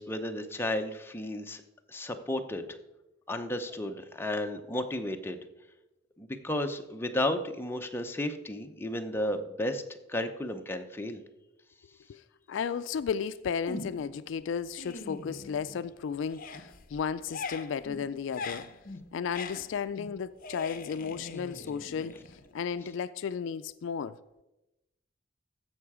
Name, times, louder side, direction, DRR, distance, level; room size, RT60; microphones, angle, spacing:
voice 1, 0.0-1.6 1.9-2.7 3.3-5.4 6.2-9.8 10.1-11.2, left 1 dB, 10° left, 0.7 m, -33 dB
voice 2, 12.5-18.7 19.1-22.2 22.5-24.2, left 6 dB, 65° left, 0.3 m, -34 dB
sound 1, 13.7-14.2 14.6-16.0 16.2-22.8, left 3 dB, 45° left, 0.7 m, -42 dB
15.0 x 5.6 x 4.8 m
head